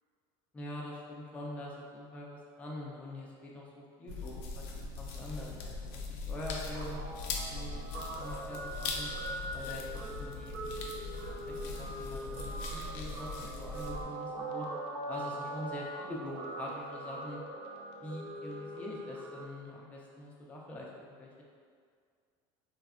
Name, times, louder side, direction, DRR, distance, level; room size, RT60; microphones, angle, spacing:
voice 1, 0.5-4.6 5.0-7.0 7.5-7.8 8.2-9.1 9.5-9.8 10.1-10.6 11.0-14.7 15.1-17.4 18.0-21.3, left 1 dB, 10° left, -3 dB, 0.3 m, -44 dB
sound 1, 4.1-14.0, left 3 dB, 80° left, 0.4 m, -40 dB
Guitar, 6.7-19.5, right 1 dB, 60° right, 0.4 m, -42 dB
3.3 x 2.1 x 2.4 m, 2.1 s
cardioid pair, 150°, 12 cm